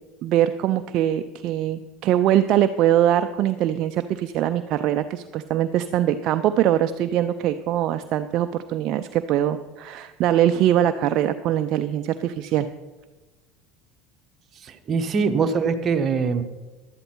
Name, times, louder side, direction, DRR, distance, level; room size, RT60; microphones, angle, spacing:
voice 1, 0.2-12.7, right 11 dB, 55° right, 9 dB, 0.5 m, -22 dB
voice 2, 14.6-16.4, right 5 dB, 40° right, 6 dB, 1.1 m, -23 dB
11.5 x 9.1 x 4.4 m, 1.2 s
hypercardioid pair, 90°, 0 cm